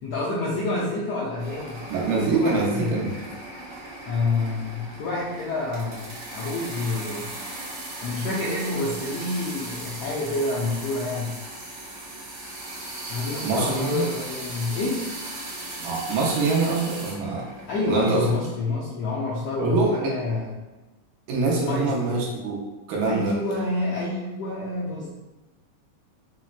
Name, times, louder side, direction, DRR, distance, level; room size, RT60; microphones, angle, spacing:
voice 1, 0.0-1.8 2.3-3.0 4.0-7.3 8.0-11.4 13.1-15.1 17.7-20.5 21.6-22.3 23.0-25.1, left 2 dB, 80° left, -6 dB, 1.4 m, -28 dB
sound 1, 1.4-18.4, right 2 dB, 60° right, 1.7 m, -37 dB
voice 2, 1.9-3.4 13.4-14.1 15.8-17.5 17.8-18.3 19.6-20.1 21.3-22.6 22.9-23.4, right 3 dB, 80° right, -3 dB, 2.1 m, -24 dB
5.7 x 2.1 x 2.4 m, 1.1 s
omnidirectional pair, 3.4 m